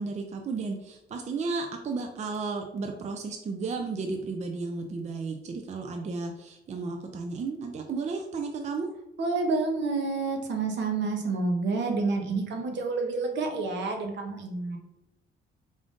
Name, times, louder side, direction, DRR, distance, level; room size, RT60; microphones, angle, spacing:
voice 1, 0.0-8.9, right 4 dB, 35° right, 3 dB, 0.4 m, -33 dB
voice 2, 9.2-14.8, right 3 dB, 65° right, 3 dB, 0.8 m, -29 dB
3.7 x 2.5 x 3.5 m, 0.87 s
cardioid pair, 90°, 20 cm